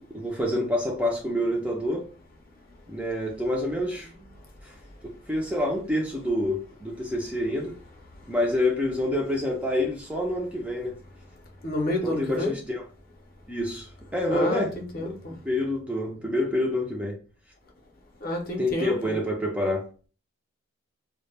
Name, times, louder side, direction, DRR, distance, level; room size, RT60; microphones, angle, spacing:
voice 1, 0.1-2.1 2.9-4.1 4.6-4.7 5.0-7.8 8.3-11.0 12.0-12.8 13.5-14.7 15.4-17.1 18.6-19.9, left 1 dB, 5° right, 0.4 m, -27 dB
voice 2, 11.6-12.5 14.3-15.3 18.2-19.2, left 1 dB, 45° left, 0.6 m, -29 dB
2.1 x 2.0 x 3.2 m
head